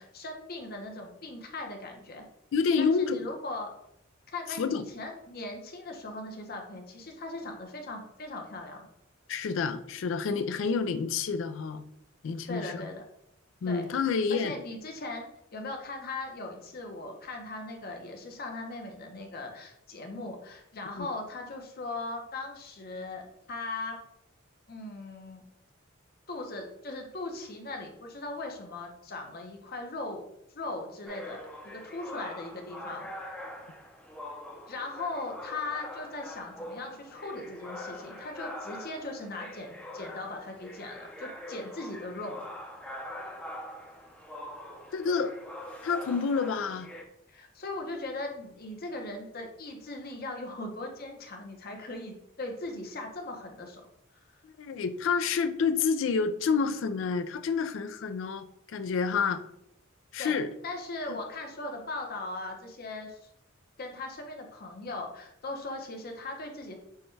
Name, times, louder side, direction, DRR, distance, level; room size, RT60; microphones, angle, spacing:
voice 1, 0.0-2.2 2.8-3.7 4.3-8.9 12.5-13.0 13.7-15.3 15.5-24.0 24.7-25.4 26.3-30.2 30.5-33.1 34.7-42.4 47.3-53.8 54.1-54.3 60.2-63.2 63.8-66.7, left 2 dB, 45° left, 3 dB, 0.7 m, -39 dB
voice 2, 2.5-3.2 4.6-4.8 9.3-11.8 12.2-12.9 13.6-14.5 20.9-21.1 44.9-45.3 45.8-46.9 54.6-59.4 60.1-60.5 61.1-61.2, left 5 dB, 65° left, 10 dB, 0.3 m, -28 dB
sound 1, 31.1-47.0, left 1 dB, 5° left, 0.5 m, -43 dB
6.4 x 2.2 x 3.2 m, 0.77 s
head